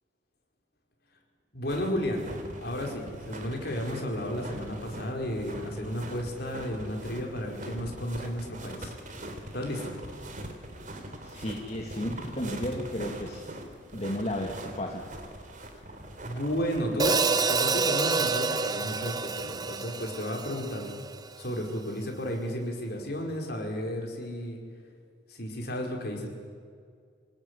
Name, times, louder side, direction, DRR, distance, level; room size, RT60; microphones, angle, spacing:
voice 1, 1.5-2.3 2.6-8.9 9.5-10.0 16.2-20.9 21.4-24.6 25.3-26.3, equal, 55° left, 1 dB, 5.2 m, -33 dB
sound 1, 1.7-17.2, right 1 dB, 40° right, 3.3 m, -42 dB
voice 2, 11.2-13.4 13.9-15.1, left 1 dB, 35° left, 1 dB, 2.1 m, -33 dB
Hi-hat, 17.0-21.3, right 4 dB, 20° right, 0.8 m, -28 dB
26.0 x 19.0 x 9.9 m, 2.1 s
head